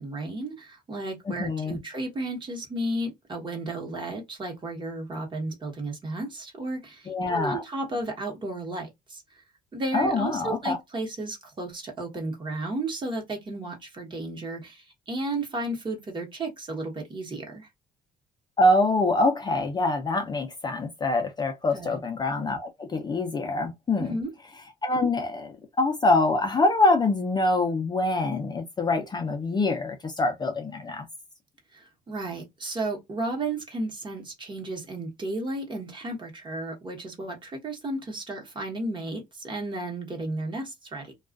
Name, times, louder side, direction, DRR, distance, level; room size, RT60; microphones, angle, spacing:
voice 1, 0.0-9.4 9.7-17.7 21.7-22.0 24.0-24.3 31.7-41.1, right 2 dB, 30° right, 1.0 m, -33 dB
voice 2, 1.4-1.8 7.1-7.6 9.9-10.8 18.6-24.2 24.8-31.1, left 2 dB, 25° left, 0.5 m, -25 dB
2.3 x 2.3 x 2.3 m
cardioid pair, 110°, 17 cm